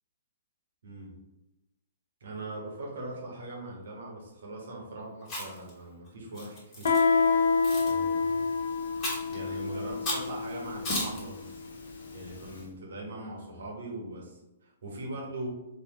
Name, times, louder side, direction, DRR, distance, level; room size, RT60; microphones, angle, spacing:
voice 1, 0.8-1.1 2.2-7.5 7.8-8.4 9.3-11.5 12.1-15.5, right 2 dB, 60° right, -2 dB, 1.3 m, -41 dB
Chewing mastication, 5.2-5.7 6.4-7.0 7.6-7.9 9.0-9.3 10.1-10.3 10.8-11.2, left 1 dB, 25° left, 1.4 m, -33 dB
Guitar, 6.8-12.3, left 4 dB, 60° left, 0.7 m, -28 dB
4.5 x 2.7 x 3.0 m, 0.97 s
figure-of-eight pair, 115°, 0 cm